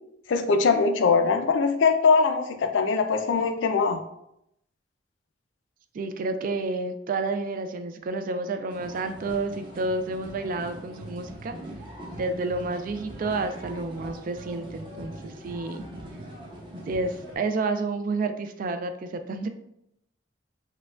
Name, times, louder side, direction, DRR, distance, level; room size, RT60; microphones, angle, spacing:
voice 1, 0.3-4.0, left 5 dB, 90° left, 6 dB, 0.4 m, -22 dB
voice 2, 5.9-11.6 12.2-15.8 16.9-19.5, right 3 dB, 45° right, 8 dB, 0.3 m, -30 dB
sound 1, 8.7-17.4, right 1 dB, 25° right, 0.7 m, -41 dB
4.5 x 2.2 x 2.4 m, 0.79 s
head